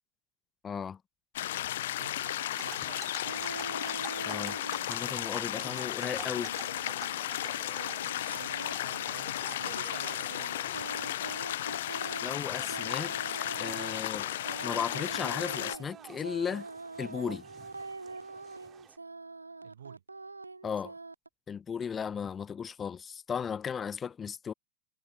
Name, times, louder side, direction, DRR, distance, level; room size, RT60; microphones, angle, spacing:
voice 1, 0.6-1.0 4.2-4.6 4.9-6.5 12.2-13.1 13.5-14.3 14.6-16.7 17.0-17.4 20.6-20.9 21.5-24.5, left 7 dB, 20° left, 0.8 m, -35 dB
sound 1, 1.3-15.8, left 13 dB, 55° left, 0.5 m, -34 dB
voice 2, 1.9-3.5 5.7-5.8 8.2-10.7 19.6-20.0, right 9 dB, 65° right, 1.2 m, -50 dB
sound 2, 2.5-19.0, right 9 dB, 25° right, 2.5 m, -51 dB
sound 3, 3.2-5.3 5.6-21.3, right 3 dB, 80° right, 0.4 m, -44 dB
figure-of-eight pair, 90°, 0 cm